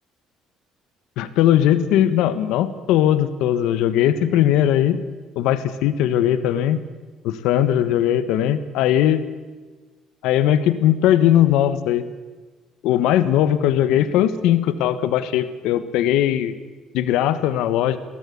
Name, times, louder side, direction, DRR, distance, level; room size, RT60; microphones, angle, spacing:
voice 1, 1.2-5.0 5.3-6.8 7.2-9.2 10.2-12.0 12.8-16.5 16.9-18.0, left 11 dB, 85° left, 12 dB, 1.3 m, -19 dB
23.0 x 18.0 x 8.5 m, 1.3 s
cardioid pair, 145°, 0 cm